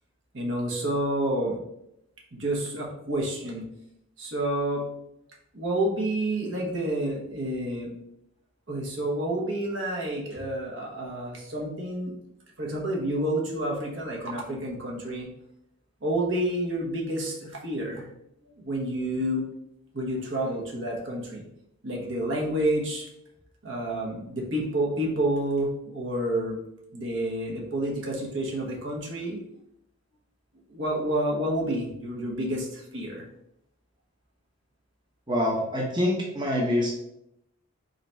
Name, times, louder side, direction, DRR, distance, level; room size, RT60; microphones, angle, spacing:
voice 1, 0.3-1.6 2.3-3.6 4.2-4.8 5.5-7.9 8.7-12.1 12.6-15.3 16.0-18.0 18.6-19.5 19.9-21.4 21.8-23.1 23.6-26.6 26.9-29.4 30.7-33.2, right 1 dB, 60° right, -2 dB, 1.1 m, -29 dB
voice 2, 35.3-36.9, left 1 dB, 20° right, -2 dB, 0.7 m, -25 dB
4.0 x 3.9 x 3.3 m, 0.79 s
head